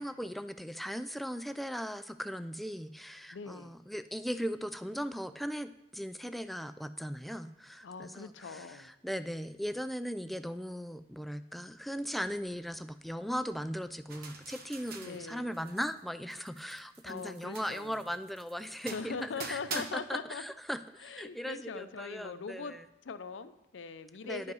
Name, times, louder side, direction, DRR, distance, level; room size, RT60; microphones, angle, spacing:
voice 1, 0.0-22.8 24.2-24.5, equal, ahead, 11 dB, 0.3 m, -38 dB
voice 2, 3.3-3.8 7.8-8.9 15.0-15.6 17.0-18.1 18.9-20.4 21.0-24.5, left 5 dB, 90° left, 12 dB, 0.5 m, -41 dB
sound 1, 14.1-16.0 16.3-19.9, right 4 dB, 55° right, 0.9 m, -45 dB
10.5 x 5.3 x 5.4 m, 0.90 s
head